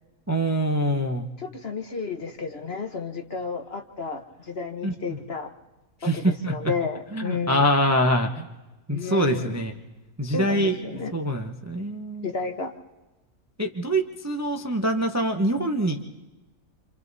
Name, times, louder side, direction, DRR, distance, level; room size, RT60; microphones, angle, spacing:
voice 1, 0.3-1.3 4.8-5.2 6.0-6.7 7.1-8.5 8.9-9.7 10.2-10.8 11.1-12.3 13.6-16.0, equal, 15° right, 4 dB, 0.9 m, -24 dB
voice 2, 1.4-5.5 6.0-7.7 8.9-9.6 10.3-11.2 12.2-12.7, left 4 dB, 45° left, 5 dB, 1.4 m, -32 dB
28.0 x 27.0 x 4.1 m, 1.1 s
omnidirectional pair, 1.6 m